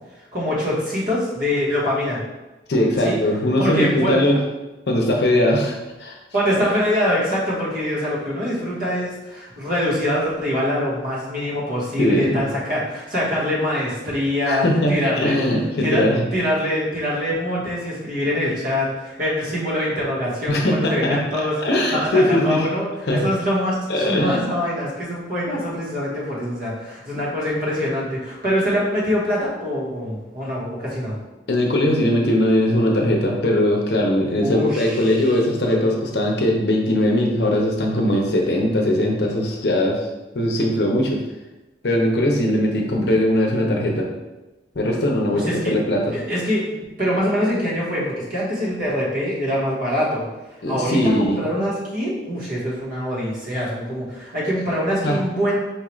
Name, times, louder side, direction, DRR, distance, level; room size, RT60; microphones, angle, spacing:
voice 1, 0.3-2.2 3.0-3.2 3.6-4.2 6.3-15.4 15.8-21.6 21.9-31.2 34.4-35.3 45.3-45.8 46.1-50.3 50.7-55.6, equal, 50° right, -6 dB, 1.2 m, -24 dB
voice 2, 2.7-4.4 4.9-6.2 12.0-12.4 14.5-16.2 20.5-21.2 21.6-22.7 23.1-23.2 23.9-24.5 31.5-40.1 40.3-41.2 41.8-44.1 44.8-46.1 50.6-51.4 55.0-55.2, left 1 dB, 65° left, 0 dB, 0.6 m, -20 dB
4.5 x 2.4 x 3.1 m, 1.1 s
head